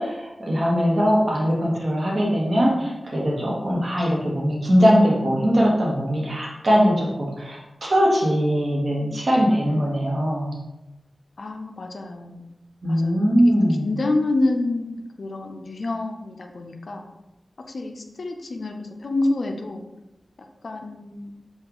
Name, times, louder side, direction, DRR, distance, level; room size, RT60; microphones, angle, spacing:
voice 1, 0.0-10.5 12.8-13.9, equal, 50° right, -3 dB, 0.9 m, -21 dB
voice 2, 11.4-12.5 12.9-17.1 17.7-19.8 20.6-21.3, left 2 dB, 65° left, 4 dB, 0.4 m, -28 dB
3.7 x 2.3 x 2.9 m, 0.94 s
wide cardioid pair, 95°, 0 cm